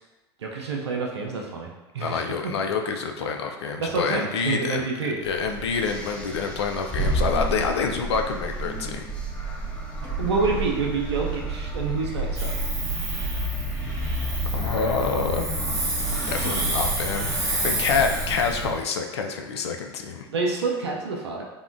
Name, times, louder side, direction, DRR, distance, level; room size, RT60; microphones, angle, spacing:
voice 1, 0.4-1.7 1.9-2.5 3.8-5.2 10.2-12.5 20.3-21.4, right 4 dB, 90° right, -1 dB, 0.4 m, -27 dB
voice 2, 2.0-4.9 5.2-9.1 14.5-15.5 16.3-17.3 17.6-20.3, left 5 dB, 80° left, 4 dB, 0.4 m, -27 dB
sound 1, 5.2-18.7, right 1 dB, 10° left, 0.7 m, -30 dB
Hiss, 12.4-18.7, right 2 dB, 20° right, 0.8 m, -30 dB
3.5 x 2.2 x 2.5 m, 1.1 s
hypercardioid pair, 90°, 14 cm